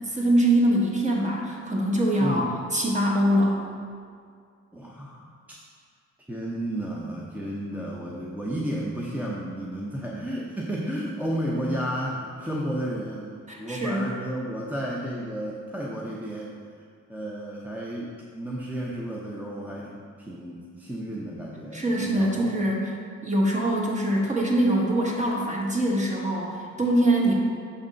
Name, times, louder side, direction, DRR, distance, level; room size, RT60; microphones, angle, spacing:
voice 1, 0.0-3.6 13.5-14.0 21.7-22.9 23.2-27.3, right 1 dB, 25° right, -2 dB, 1.3 m, -23 dB
voice 2, 2.2-2.5 4.7-5.3 6.3-16.5 17.1-22.7, right 1 dB, 5° right, -4 dB, 0.6 m, -32 dB
6.7 x 3.5 x 5.2 m, 2.1 s
cardioid pair, 90°, 30 cm